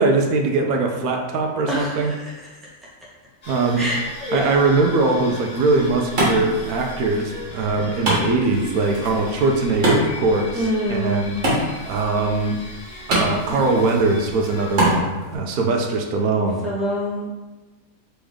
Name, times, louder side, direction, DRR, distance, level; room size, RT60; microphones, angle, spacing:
voice 1, 0.0-2.1 3.5-3.8 4.3-12.6 13.1-16.6, right 3 dB, 90° right, 2 dB, 1.1 m, -21 dB
voice 2, 1.7-2.7 3.8-4.6 7.6-7.9 10.5-11.2 13.5-13.9 16.6-17.3, equal, ahead, -7 dB, 0.9 m, -27 dB
sound 1, 3.4-15.0, left 1 dB, 40° left, 0.9 m, -38 dB
Wood, 5.4-15.4, equal, 60° right, 1.7 m, -27 dB
4.1 x 3.4 x 3.6 m, 1.2 s
omnidirectional pair, 1.5 m